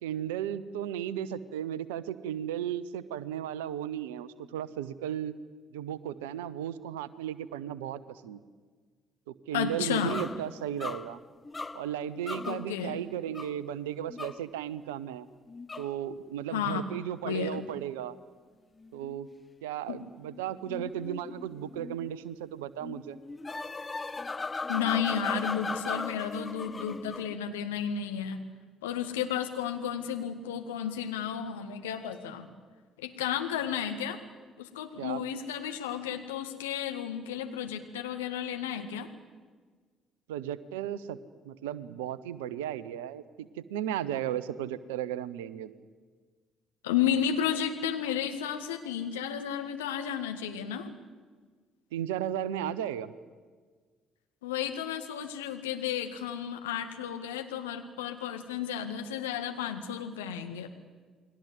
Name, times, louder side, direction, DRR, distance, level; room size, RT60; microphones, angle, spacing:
voice 1, 0.0-5.3 5.7-8.4 9.3-11.2 11.7-15.3 15.8-18.2 18.9-19.3 19.6-23.2 35.0-35.2 40.3-41.2 41.4-45.8 51.9-53.1, right 10 dB, 70° right, 18 dB, 1.0 m, -35 dB
voice 2, 9.5-10.2 12.5-13.0 16.5-16.8 17.2-17.6 19.9-20.0 24.7-28.4 28.8-32.5 33.0-34.2 34.6-39.1 46.8-50.9 54.4-60.7, left 8 dB, 75° left, 6 dB, 1.9 m, -32 dB
sound 1, 10.1-12.7 13.3-13.6 14.1-14.4 15.5-16.0 18.8-19.3 20.3-22.1 22.8-27.4, left 3 dB, 25° left, 0.8 m, -38 dB
29.0 x 21.5 x 8.1 m, 1.5 s
figure-of-eight pair, 45°, 0 cm